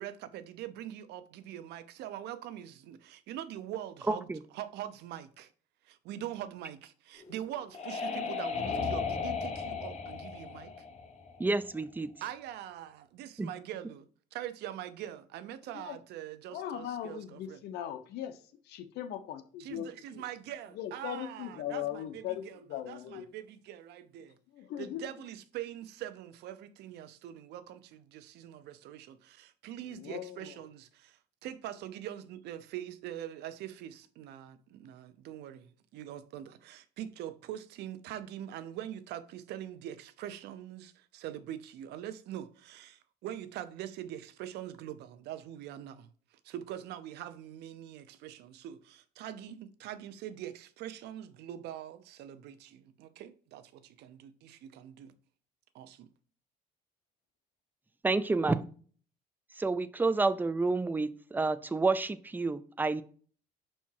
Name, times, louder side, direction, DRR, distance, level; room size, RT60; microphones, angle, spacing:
voice 1, 0.0-4.3 4.5-5.5 5.8-10.7 12.2-17.6 19.6-22.6 22.9-24.4 24.8-55.1 55.7-56.1, right 11 dB, 80° right, 0.7 m, -43 dB
voice 2, 4.1-4.4 11.4-12.1 13.4-13.5 58.0-58.7 59.6-63.0, right 3 dB, 10° right, 0.4 m, -29 dB
sound 1, 7.2-11.8, left 5 dB, 40° left, 1.1 m, -36 dB
voice 3, 16.5-18.4 18.6-20.2 20.7-23.2 24.5-25.1 29.9-30.5, left 11 dB, 80° left, 0.8 m, -39 dB
5.6 x 4.4 x 4.6 m
cardioid pair, 110°, 17 cm